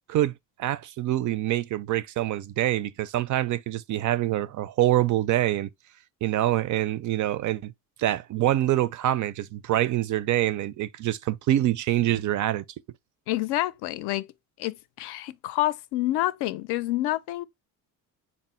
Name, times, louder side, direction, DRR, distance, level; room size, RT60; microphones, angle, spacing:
voice 1, 0.6-5.7 6.2-7.7 8.0-12.6, right 13 dB, 45° right, 0.4 m, -25 dB
voice 2, 13.3-14.3 14.6-17.4, left 16 dB, 65° left, 0.5 m, -28 dB
4.1 x 2.0 x 4.2 m
cardioid pair, 95°, 42 cm